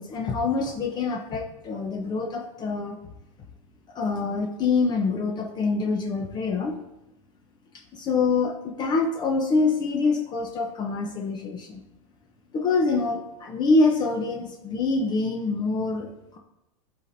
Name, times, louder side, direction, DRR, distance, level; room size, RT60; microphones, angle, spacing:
voice 1, 0.0-3.0 3.9-6.7 7.9-11.8 12.5-16.4, left 3 dB, 25° left, 2 dB, 0.7 m, -25 dB
10.5 x 4.3 x 2.6 m, 0.92 s
supercardioid pair, 140°, 17 cm